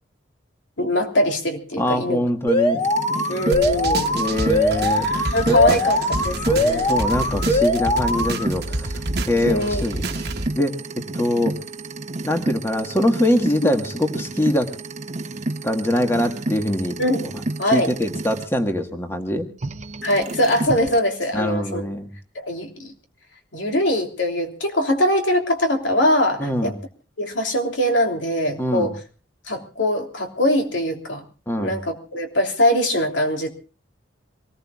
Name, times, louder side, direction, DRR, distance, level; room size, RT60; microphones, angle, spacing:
voice 1, 0.8-2.2 3.3-4.1 5.3-6.0 6.2-6.9 9.4-9.8 13.6-13.7 17.0-17.3 17.6-17.9 20.0-21.8 22.3-22.9 23.5-26.7 27.2-28.9 29.5-31.2 31.6-33.5, left 1 dB, 80° left, 3 dB, 3.2 m, -22 dB
voice 2, 1.8-2.8 4.1-5.1 5.5-5.8 6.5-9.0 9.2-10.3 10.5-11.6 12.2-14.7 15.6-17.0 17.7-19.5 21.3-22.1 26.4-26.7 28.6-28.9 31.5-31.8, left 1 dB, 15° left, 5 dB, 1.5 m, -23 dB
Alarm, 2.5-8.5, left 1 dB, 30° left, 1.9 m, -21 dB
sound 1, 2.8-18.4 19.6-21.0, right 2 dB, 40° right, 0.9 m, -31 dB
sound 2, 3.5-10.5, right 2 dB, 60° right, 1.2 m, -29 dB
25.5 x 19.5 x 2.4 m, 0.35 s
head